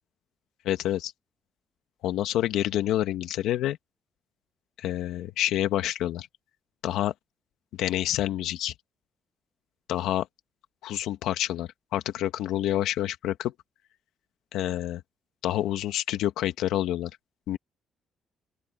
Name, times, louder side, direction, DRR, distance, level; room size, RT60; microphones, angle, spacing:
voice 1, 0.6-1.1 2.0-3.8 4.8-6.3 6.8-7.1 7.8-8.7 9.9-10.3 10.8-13.5 14.5-15.0 15.4-17.1 17.5-17.6, left 13 dB, 90° left, 1.6 m, -28 dB
open air
cardioid pair, 90°, 0 cm